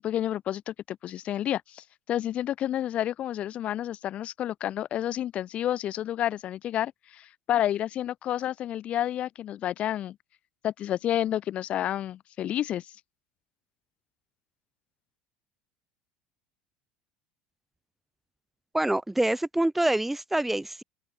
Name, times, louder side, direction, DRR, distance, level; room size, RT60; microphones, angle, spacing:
voice 1, 0.0-10.2 10.6-12.9, left 11 dB, 45° left, 4.3 m, -30 dB
voice 2, 18.7-20.8, right 1 dB, 5° right, 1.9 m, -26 dB
open air
supercardioid pair, 105°, 3 cm